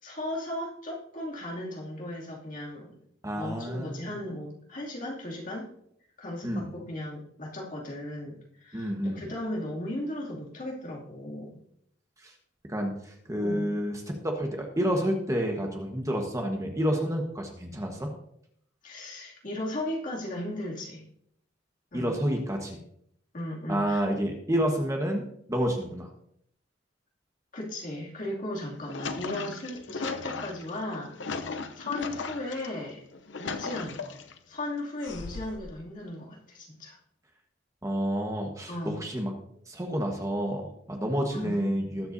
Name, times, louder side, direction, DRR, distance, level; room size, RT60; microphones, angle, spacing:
voice 1, 0.0-3.0 3.3-5.7 6.2-11.6 13.4-13.7 18.8-21.1 21.9-22.2 23.3-24.0 27.5-33.0 33.4-34.2 34.5-37.0 38.7-39.0 41.3-41.6, left 1 dB, 45° left, -3 dB, 2.7 m, -36 dB
voice 2, 3.2-4.1 6.4-6.6 8.7-9.2 12.2-12.3 12.7-18.1 21.9-22.8 23.7-26.1 37.8-39.3 39.7-42.1, equal, 15° right, 2 dB, 1.3 m, -29 dB
sound 1, 28.6-32.7 33.1-34.4 35.0-35.7, left 4 dB, 80° left, 0.8 m, -37 dB
19.5 x 8.0 x 2.7 m, 0.71 s
head